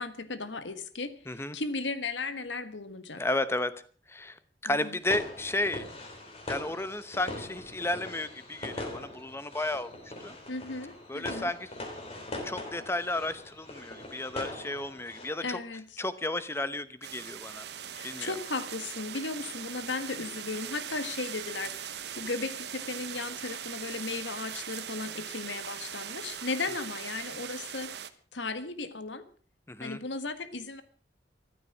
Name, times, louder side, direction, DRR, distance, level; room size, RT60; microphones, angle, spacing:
voice 1, 0.0-3.2 4.6-5.0 10.5-11.5 15.4-16.0 17.9-27.9 28.3-29.3 29.8-30.8, left 3 dB, 90° left, 11 dB, 1.6 m, -36 dB
voice 2, 1.3-1.6 3.2-3.7 4.1-4.4 4.6-5.8 6.5-9.9 10.2-10.4 11.1-11.7 12.4-15.6 16.0-17.6 18.0-18.3 29.7-30.0, left 2 dB, 15° left, 13 dB, 0.9 m, -33 dB
sound 1, 5.0-15.3, left 1 dB, 35° left, 3.5 m, -41 dB
sound 2, 17.0-28.1, right 9 dB, 65° right, 1.0 m, -40 dB
14.5 x 12.5 x 6.2 m, 0.43 s
head